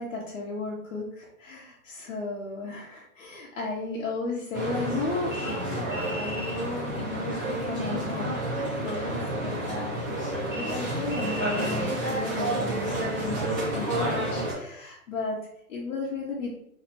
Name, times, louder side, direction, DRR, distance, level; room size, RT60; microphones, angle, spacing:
voice 1, 0.0-13.5 13.7-15.4 15.7-16.5, left 3 dB, 55° left, -3 dB, 0.8 m, -34 dB
sound 1, 4.5-14.5, right 1 dB, 15° right, 0.4 m, -30 dB
3.1 x 2.8 x 2.6 m, 0.73 s
hypercardioid pair, 125°, 45 cm